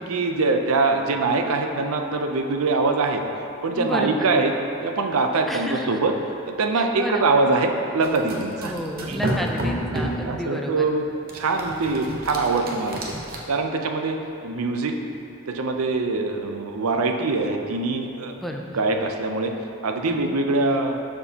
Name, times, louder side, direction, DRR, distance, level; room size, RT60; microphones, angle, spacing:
voice 1, 0.1-3.2 3.6-4.5 4.8-6.1 6.5-9.2 9.9-11.1 11.3-13.1 13.5-14.2 14.4-15.0 15.5-18.3 18.7-19.5 19.8-21.0, right 3 dB, 85° right, 4 dB, 0.6 m, -23 dB
voice 2, 3.8-4.3 5.5-6.0 6.7-7.3 8.6-10.9 18.4-18.8 20.1-20.4, equal, ahead, 1 dB, 0.4 m, -31 dB
sound 1, 8.0-10.3 11.3-13.4, right 1 dB, 45° right, 0.8 m, -30 dB
12.0 x 4.5 x 2.8 m, 2.7 s
head